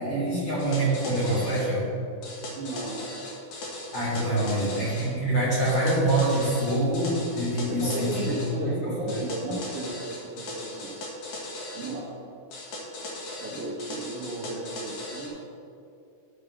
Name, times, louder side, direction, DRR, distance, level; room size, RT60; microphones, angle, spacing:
voice 1, 0.0-1.8 3.9-8.9 9.4-9.5, right 1 dB, 30° left, -7 dB, 3.2 m, -25 dB
sound 1, 0.6-1.7 2.2-5.1 5.6-8.5 9.1-12.0 12.5-15.3, left 1 dB, 60° left, 2.8 m, -38 dB
voice 2, 2.6-3.1 4.4-4.8 7.6-10.9 11.7-12.1 13.4-15.4, right 2 dB, 55° right, -6 dB, 1.9 m, -34 dB
13.0 x 4.9 x 6.5 m, 2.7 s
omnidirectional pair, 4.4 m